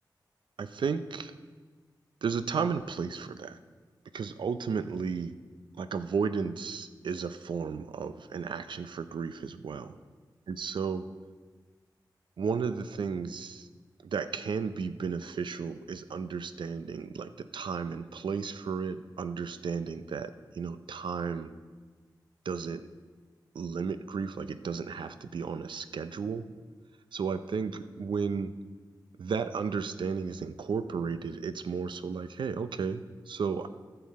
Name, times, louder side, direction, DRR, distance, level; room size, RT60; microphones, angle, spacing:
voice 1, 0.6-1.3 2.2-3.6 4.1-5.4 5.7-10.0 10.5-11.0 12.4-13.7 14.0-21.5 22.5-22.9 23.5-26.5 27.1-28.5 29.2-33.7, right 5 dB, 90° right, 12 dB, 0.5 m, -33 dB
14.5 x 6.8 x 4.2 m, 1.4 s
wide cardioid pair, 70°, 8 cm